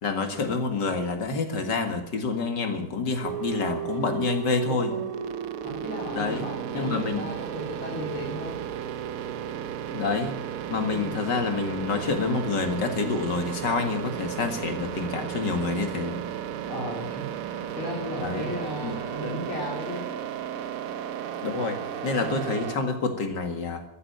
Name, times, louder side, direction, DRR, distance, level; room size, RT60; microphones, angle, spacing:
voice 1, 0.0-4.9 6.1-6.5 6.7-7.3 9.9-10.4 10.7-16.2 18.2-18.5 18.8-19.0 21.4-23.8, left 4 dB, 55° left, 7 dB, 2.5 m, -28 dB
sound 1, 3.2-22.8, right 9 dB, 70° right, 0.8 m, -34 dB
voice 2, 4.6-5.1 5.6-8.6 16.7-20.1 22.2-22.5, left 1 dB, 80° left, -4 dB, 4.4 m, -35 dB
14.5 x 10.5 x 9.2 m, 0.85 s
omnidirectional pair, 2.3 m